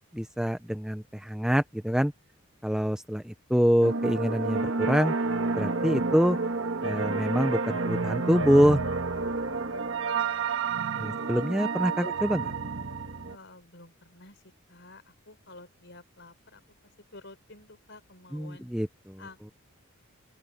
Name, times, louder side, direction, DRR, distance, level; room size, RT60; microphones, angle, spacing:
voice 1, 0.1-2.1 2.6-5.1 5.6-6.4 6.8-8.8 11.0-12.4 18.3-19.2, equal, 5° right, 0.5 m, -25 dB
sound 1, 3.8-13.4, right 4 dB, 55° right, 1.5 m, -30 dB
voice 2, 10.1-11.4 12.0-12.1 13.3-16.6 17.1-18.7 19.2-19.5, left 2 dB, 55° left, 5.0 m, -50 dB
open air
head